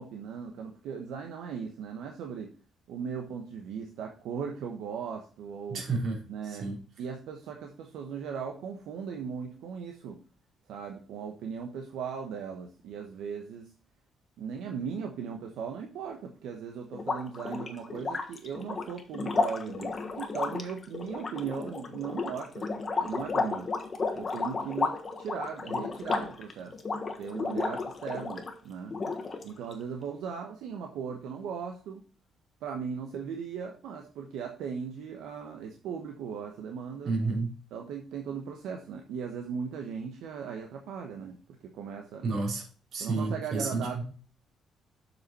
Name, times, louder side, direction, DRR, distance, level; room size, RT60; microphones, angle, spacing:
voice 1, 0.0-2.5 2.9-5.8 6.3-6.7 7.0-10.2 10.7-13.7 14.4-22.7 23.0-23.7 24.1-26.8 27.2-29.0 29.4-32.0 32.6-37.1 37.7-42.2 43.0-44.0, right 6 dB, 85° right, 3 dB, 1.0 m, -38 dB
voice 2, 5.7-6.8 37.0-37.5 42.2-42.6 42.9-44.0, right 3 dB, 65° right, -1 dB, 3.2 m, -31 dB
sound 1, 16.9-28.5 28.9-29.7, left 4 dB, 40° left, 1.3 m, -33 dB
7.5 x 5.5 x 4.2 m, 0.39 s
cardioid pair, 90°, 0 cm